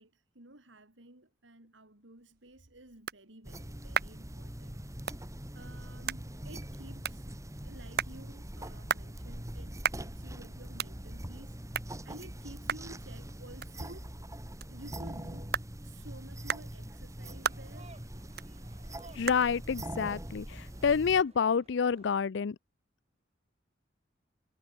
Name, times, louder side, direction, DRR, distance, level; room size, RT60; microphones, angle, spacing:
voice 1, 0.0-5.2 5.5-11.6 12.0-14.1 14.7-15.5 15.8-17.9, right 1 dB, 75° right, 4.5 m, -53 dB
sound 1, 2.2-21.5, right 7 dB, 55° right, 2.7 m, -40 dB
sound 2, 3.4-21.2, right 1 dB, 15° right, 2.7 m, -43 dB
sound 3, 17.2-22.3, right 3 dB, 35° right, 4.0 m, -58 dB
voice 2, 19.1-22.6, left 6 dB, 65° left, 0.5 m, -28 dB
head